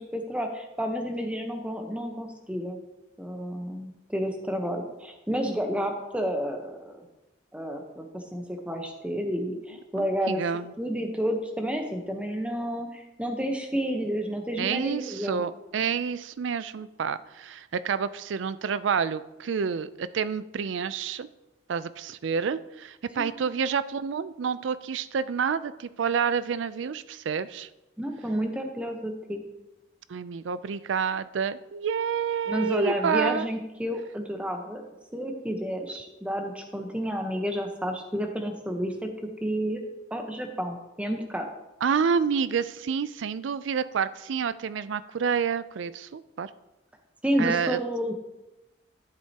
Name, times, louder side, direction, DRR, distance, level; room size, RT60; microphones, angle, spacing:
voice 1, 0.0-2.8 3.2-7.1 7.5-10.4 10.8-15.4 23.2-23.5 28.0-29.4 32.5-34.8 35.1-39.1 39.4-39.8 40.1-41.5 47.2-48.1, equal, 5° right, 4 dB, 0.9 m, -30 dB
voice 2, 10.0-10.7 14.6-21.3 21.7-27.7 30.1-33.5 41.8-46.5 47.4-47.8, right 6 dB, 70° right, 15 dB, 0.4 m, -28 dB
12.0 x 7.6 x 2.9 m, 1.0 s
head